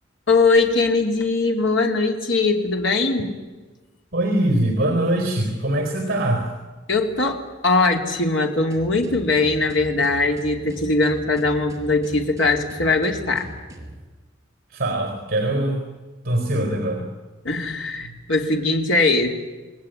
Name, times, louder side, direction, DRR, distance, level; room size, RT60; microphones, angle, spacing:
voice 1, 0.3-3.3 6.9-13.5 17.4-19.3, left 3 dB, 70° left, 3 dB, 3.3 m, -20 dB
voice 2, 4.1-6.5 14.7-15.8 16.2-17.1, right 1 dB, 50° right, 4 dB, 4.2 m, -22 dB
sound 1, 8.7-14.0, right 1 dB, 15° right, 5.0 m, -40 dB
29.0 x 19.5 x 9.3 m, 1.2 s
head